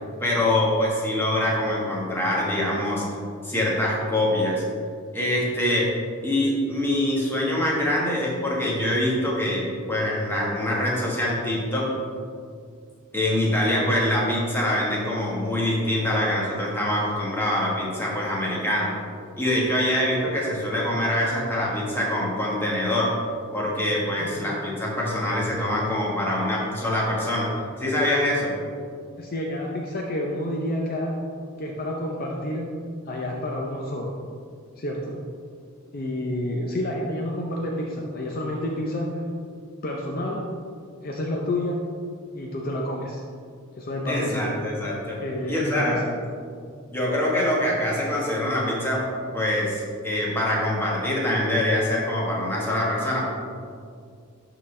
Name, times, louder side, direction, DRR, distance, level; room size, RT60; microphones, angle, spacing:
voice 1, 0.2-3.0 3.4-4.6 5.1-5.9 6.2-11.9 13.1-18.9 19.4-23.1 23.5-27.5 27.8-28.5 44.1-45.2 45.5-46.0 46.9-49.1 49.3-53.2, left 1 dB, 10° left, -4 dB, 1.2 m, -24 dB
voice 2, 29.2-31.1 31.6-32.7 33.1-34.1 34.8-35.1 35.9-39.2 39.8-40.5 41.0-41.8 42.3-43.2 43.8-44.6 45.2-46.2, left 1 dB, 45° left, -1 dB, 0.6 m, -29 dB
11.0 x 3.9 x 3.2 m, 2.2 s
head